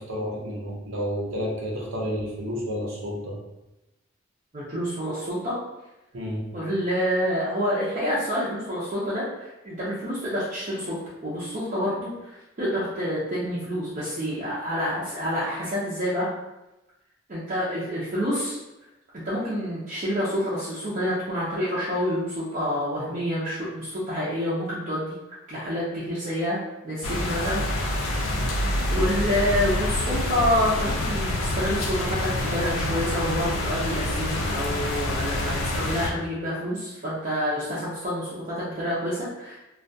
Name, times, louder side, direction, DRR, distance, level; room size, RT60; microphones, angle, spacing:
voice 1, 0.0-3.4 6.1-6.5, equal, 75° right, -3 dB, 0.7 m, -30 dB
voice 2, 4.5-5.6 6.5-16.3 17.3-18.6 19.1-25.1 25.5-26.6 26.8-28.3 28.9-39.6, equal, 35° right, -10 dB, 0.5 m, -28 dB
sound 1, 27.0-36.1, left 1 dB, 85° left, 0.4 m, -27 dB
2.3 x 2.2 x 2.6 m, 0.97 s
head